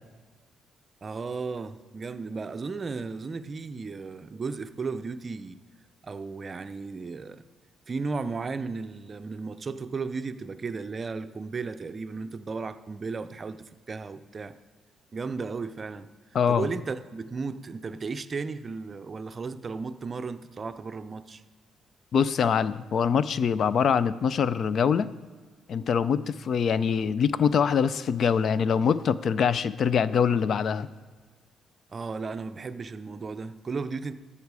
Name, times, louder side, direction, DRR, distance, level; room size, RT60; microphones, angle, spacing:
voice 1, 1.0-5.6 6.0-7.4 7.9-14.6 15.1-16.1 16.5-21.4 31.9-34.1, right 4 dB, 35° right, 11 dB, 0.5 m, -35 dB
voice 2, 16.3-16.7 22.1-25.1 25.7-30.9, left 7 dB, 60° left, 16 dB, 0.4 m, -24 dB
13.0 x 5.6 x 4.8 m, 1.4 s
cardioid pair, 90°, 0 cm